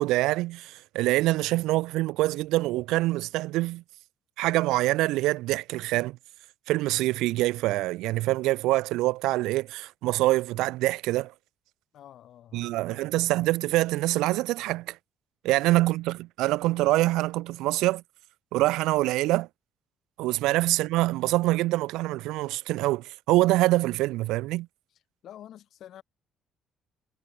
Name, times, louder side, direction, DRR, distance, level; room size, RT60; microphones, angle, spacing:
voice 1, 0.0-3.8 4.4-6.2 6.7-11.3 12.5-15.0 15.4-18.0 18.5-19.5 20.2-24.7, right 18 dB, 90° right, 0.6 m, -25 dB
voice 2, 11.9-13.0 15.5-15.8 20.4-20.6 25.2-26.0, left 11 dB, 60° left, 3.4 m, -49 dB
cardioid pair, 130°, 0 cm